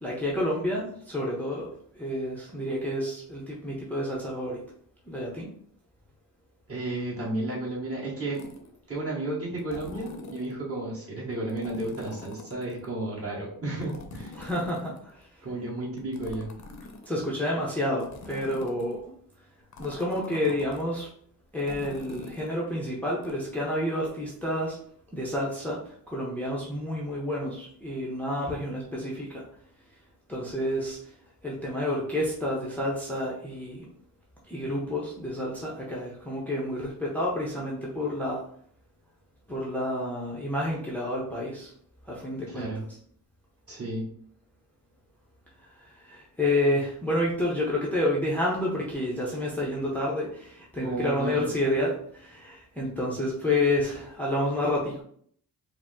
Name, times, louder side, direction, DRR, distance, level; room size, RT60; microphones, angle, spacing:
voice 1, 0.0-1.7 1.9-4.6 5.0-5.5 14.3-15.4 17.0-19.0 19.8-21.1 21.5-24.8 25.1-29.4 30.3-31.0 31.4-33.9 34.4-38.4 39.5-41.7 42.0-42.7 45.6-55.0, left 1 dB, 5° left, -5 dB, 0.7 m, -29 dB
voice 2, 6.7-8.5 8.9-14.3 15.4-16.5 42.5-42.8 43.7-44.1 50.8-51.4, right 2 dB, 40° right, -5 dB, 1.7 m, -32 dB
sound 1, 8.3-8.8 9.6-10.5 11.5-12.9 13.8-15.3 16.0-17.3 18.0-19.0 19.7-20.8 21.6-22.5 23.2-23.3, left 3 dB, 50° left, 0.7 m, -44 dB
4.9 x 2.1 x 3.6 m, 0.62 s
wide cardioid pair, 140°, 36 cm